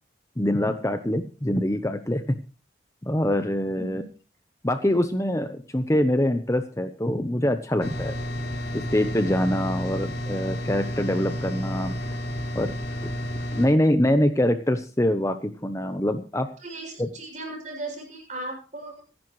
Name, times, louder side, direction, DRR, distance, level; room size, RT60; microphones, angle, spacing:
voice 1, 0.4-2.4 3.0-4.0 4.6-8.2 8.7-12.0 12.5-12.7 13.0-13.1 13.5-16.5 17.0-17.1, left 1 dB, 15° left, 8 dB, 0.8 m, -24 dB
sound 1, 7.8-13.7, equal, 55° left, 3.3 m, -31 dB
voice 2, 16.6-19.0, right 2 dB, 40° right, 2 dB, 6.8 m, -37 dB
26.0 x 10.5 x 3.2 m, 0.35 s
head